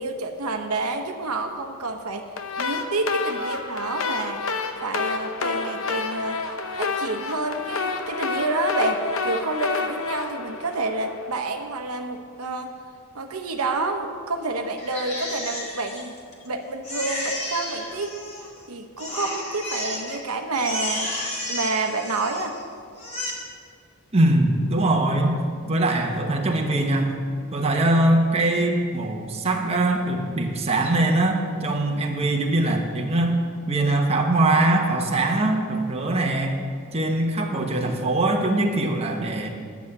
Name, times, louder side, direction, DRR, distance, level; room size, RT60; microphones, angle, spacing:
voice 1, 0.0-2.3 2.6-4.4 4.8-6.4 6.7-12.8 13.1-16.1 16.4-18.2 18.7-21.1 21.5-22.6, right 2 dB, 85° right, 5 dB, 0.9 m, -28 dB
sound 1, 2.4-11.5, left 4 dB, 70° left, 0.8 m, -29 dB
voice 2, 3.4-4.0 24.1-25.4 25.7-27.2 27.5-33.4 33.7-36.6 36.9-39.5, right 2 dB, 30° right, 1 dB, 1.2 m, -22 dB
Crying sobbing, 14.8-16.5 16.8-18.6 19.0-20.2 20.5-22.6 23.0-23.3, left 1 dB, 30° left, 2.0 m, -32 dB
11.0 x 7.3 x 7.9 m, 2.1 s
head